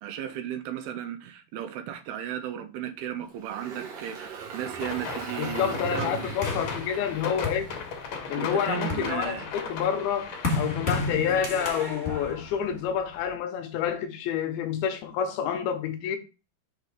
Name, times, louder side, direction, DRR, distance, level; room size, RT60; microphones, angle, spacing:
voice 1, 0.0-6.2 8.4-9.5, right 10 dB, 80° right, 2.4 m, -35 dB
Engine, 3.3-8.6, right 6 dB, 55° right, 2.0 m, -39 dB
sound 1, 4.8-11.1, left 5 dB, 60° left, 2.0 m, -37 dB
voice 2, 5.4-7.7 8.3-16.2, left 8 dB, 75° left, 2.5 m, -28 dB
sound 2, 6.4-8.2 8.7-13.3, left 3 dB, 25° left, 1.7 m, -33 dB
6.4 x 4.1 x 4.8 m
omnidirectional pair, 4.7 m